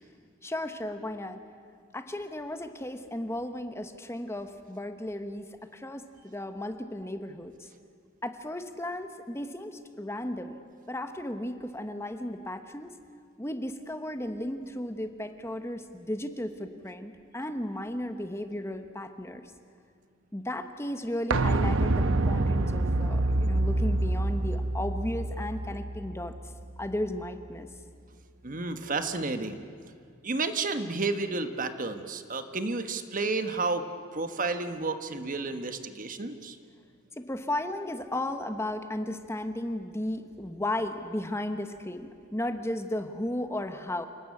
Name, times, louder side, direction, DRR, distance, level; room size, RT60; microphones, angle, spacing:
voice 1, 0.4-1.4 1.9-5.5 5.7-7.7 8.2-10.6 10.9-12.9 13.4-19.5 20.3-26.3 26.8-27.7 37.2-44.1, left 1 dB, 15° left, 8 dB, 1.1 m, -35 dB
sound 1, 21.3-26.9 27.2-27.3, right 2 dB, 85° right, 1.0 m, -27 dB
voice 2, 28.4-29.6 30.2-33.8 34.1-36.6, right 3 dB, 45° right, 9 dB, 1.3 m, -31 dB
28.0 x 19.0 x 8.5 m, 2.3 s
head